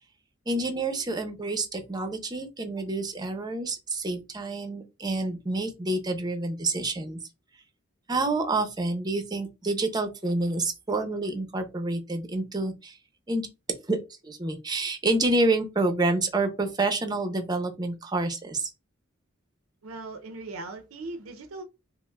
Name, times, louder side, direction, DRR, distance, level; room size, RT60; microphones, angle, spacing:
voice 1, 0.5-7.2 8.1-13.0 13.3-13.5 13.9-14.0 14.2-18.7, right 2 dB, 20° right, 0.5 m, -28 dB
voice 2, 19.8-21.6, right 2 dB, 85° right, 0.5 m, -39 dB
5.1 x 2.0 x 2.2 m
head